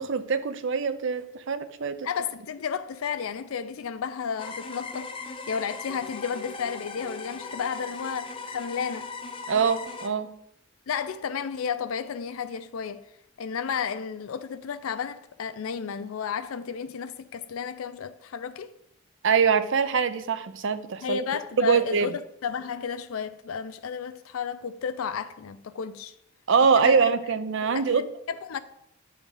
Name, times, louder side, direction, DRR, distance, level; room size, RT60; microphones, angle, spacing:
voice 1, 0.0-2.1 9.5-10.3 19.2-21.2 21.6-22.1 26.5-28.0, right 6 dB, 65° right, 0.6 m, -23 dB
voice 2, 2.0-9.1 10.9-13.1 13.4-18.7 21.0-26.1 26.7-27.1 27.6-28.6, left 6 dB, 90° left, 0.4 m, -32 dB
sound 1, 4.4-10.1, left 4 dB, 25° left, 0.6 m, -38 dB
9.4 x 3.6 x 5.4 m
head